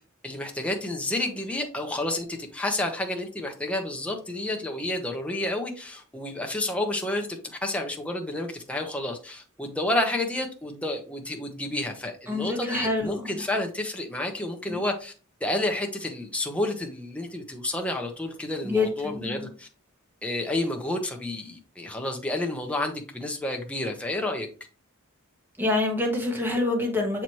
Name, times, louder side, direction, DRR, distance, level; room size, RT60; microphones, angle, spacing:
voice 1, 0.2-15.1 15.4-19.7 20.2-24.5, left 1 dB, 5° left, 1.0 m, -30 dB
voice 2, 12.3-13.5 14.7-14.8 18.6-19.5 25.6-27.2, left 2 dB, 10° right, 1.3 m, -27 dB
6.8 x 4.6 x 3.0 m
head